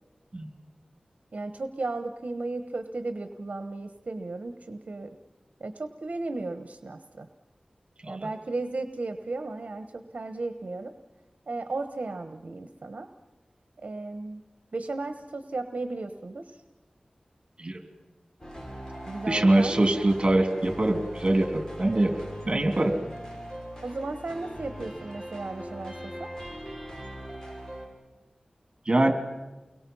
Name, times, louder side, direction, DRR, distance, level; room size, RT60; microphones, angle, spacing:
voice 1, 1.3-5.2 5.6-7.3 8.1-10.9 11.5-13.1 13.8-14.4 14.7-16.6 19.1-19.8 23.8-26.3, right 3 dB, 70° right, 8 dB, 1.2 m, -35 dB
sound 1, 18.4-27.9, equal, 25° left, 5.9 m, -40 dB
voice 2, 19.3-22.2 22.4-22.9 28.9-29.1, right 1 dB, 40° right, 6 dB, 3.2 m, -23 dB
30.0 x 22.5 x 5.6 m, 1.1 s
wide cardioid pair, 60°, 3 cm